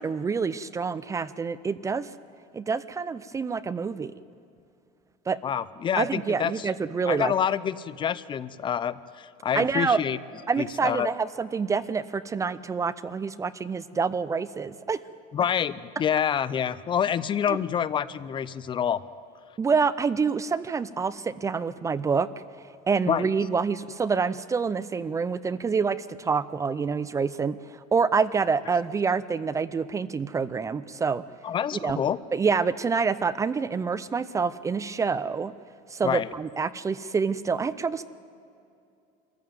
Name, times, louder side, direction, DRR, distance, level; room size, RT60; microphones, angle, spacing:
voice 1, 0.0-2.1 2.5-4.1 5.3-5.4 6.0-7.3 9.5-10.0 10.5-15.0 17.5-17.6 19.6-22.3 22.9-31.2 31.7-32.0 32.3-35.5 35.9-38.0, right 5 dB, 20° right, 16 dB, 0.5 m, -27 dB
voice 2, 5.4-6.7 7.1-10.2 10.6-11.1 15.3-19.0 23.1-23.3 31.4-32.2 36.0-36.3, left 8 dB, 30° left, 17 dB, 0.6 m, -27 dB
25.0 x 14.5 x 9.3 m, 2.5 s
cardioid pair, 140°, 16 cm